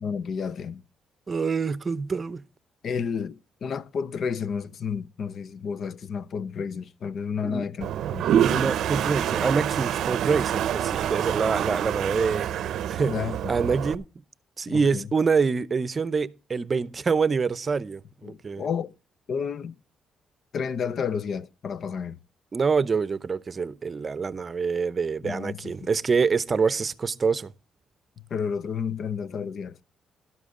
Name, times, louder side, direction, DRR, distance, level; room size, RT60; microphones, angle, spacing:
voice 1, 0.0-0.8 2.8-8.7 13.0-13.5 14.7-15.1 18.2-18.9 19.3-19.8 20.5-22.2 25.2-25.9 28.3-29.8, left 6 dB, 60° left, 0.6 m, -31 dB
voice 2, 1.3-2.4 7.4-7.6 8.4-12.5 12.9-13.1 13.5-14.0 14.6-18.7 22.5-27.5, right 5 dB, 35° right, 0.6 m, -26 dB
Toilet flush, 7.8-13.9, right 10 dB, 75° right, 0.6 m, -26 dB
12.5 x 12.0 x 3.7 m
cardioid pair, 90°, 0 cm